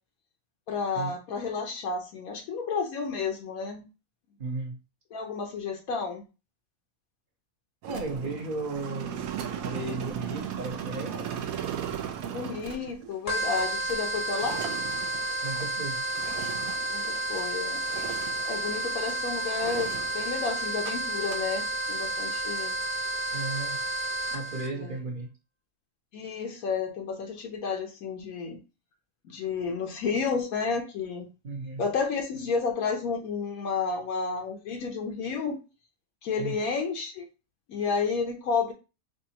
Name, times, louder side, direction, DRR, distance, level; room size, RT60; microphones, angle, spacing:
voice 1, 0.7-3.9 5.1-6.2 12.3-14.6 16.9-17.8 18.5-22.7 24.7-24.9 26.1-28.6 29.2-31.3 31.8-35.6 36.2-37.3 37.7-38.7, left 5 dB, 85° left, 1.2 m, -31 dB
voice 2, 4.4-4.8 7.8-11.4 15.4-16.1 23.3-23.8 24.3-25.3 31.4-31.8 36.4-36.6, right 3 dB, 45° right, 0.9 m, -35 dB
sound 1, 7.8-17.5 17.8-19.2 19.5-20.9 21.2-21.4, right 9 dB, 75° right, 1.0 m, -37 dB
sound 2, 13.3-24.7, right 1 dB, 40° left, 0.6 m, -31 dB
5.0 x 2.4 x 2.8 m
omnidirectional pair, 1.5 m